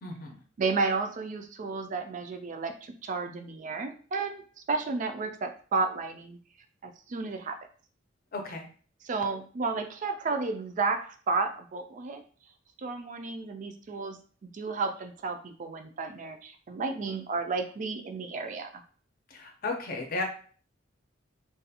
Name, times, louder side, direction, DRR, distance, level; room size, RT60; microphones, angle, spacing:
voice 1, 0.0-0.4 8.3-8.6 19.3-20.2, left 2 dB, 45° left, 2 dB, 0.6 m, -34 dB
voice 2, 0.6-4.4 4.7-6.4 6.8-7.6 9.0-12.2 12.8-18.7, right 4 dB, 40° right, 6 dB, 0.3 m, -32 dB
2.5 x 2.3 x 2.7 m, 0.43 s
head